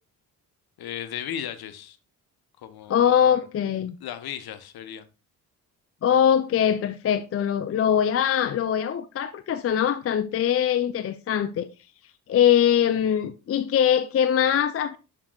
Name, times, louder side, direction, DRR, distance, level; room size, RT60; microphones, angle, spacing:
voice 1, 0.8-2.0 2.6-3.4 4.0-5.0, left 10 dB, 50° left, 1.0 m, -36 dB
voice 2, 2.9-4.0 6.0-11.7 12.3-15.0, left 9 dB, 30° left, 0.5 m, -22 dB
11.0 x 3.8 x 2.3 m
hypercardioid pair, 45°, 47 cm